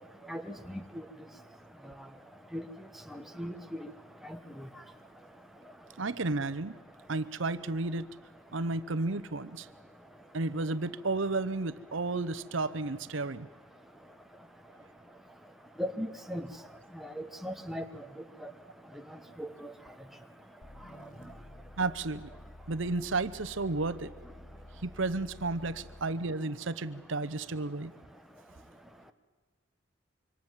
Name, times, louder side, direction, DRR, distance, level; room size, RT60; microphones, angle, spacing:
voice 1, 0.3-0.8 2.5-2.6 3.1-3.6 15.8-16.5 17.2-17.8 18.4-18.5 19.4-19.7, equal, ahead, 5 dB, 1.2 m, -37 dB
voice 2, 6.0-6.8 7.1-8.1 8.5-9.7 10.3-13.5 21.8-22.3 22.7-24.1 24.8-27.9, right 3 dB, 70° right, 15 dB, 0.9 m, -32 dB
sound 1, 20.6-26.2, left 1 dB, 40° left, 0.9 m, -51 dB
26.0 x 25.0 x 7.4 m, 1.4 s
head